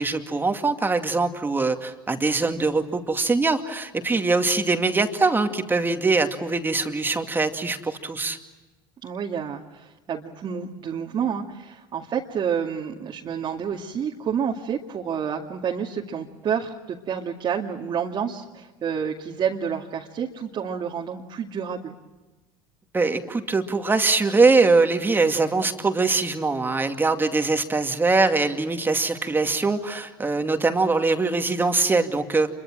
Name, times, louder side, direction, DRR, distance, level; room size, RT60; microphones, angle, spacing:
voice 1, 0.0-8.4 22.9-32.5, right 3 dB, 15° right, 6 dB, 2.4 m, -22 dB
voice 2, 9.0-21.9, right 7 dB, 40° right, 0 dB, 2.3 m, -29 dB
27.5 x 23.0 x 7.6 m, 1.2 s
hypercardioid pair, 90°, 12 cm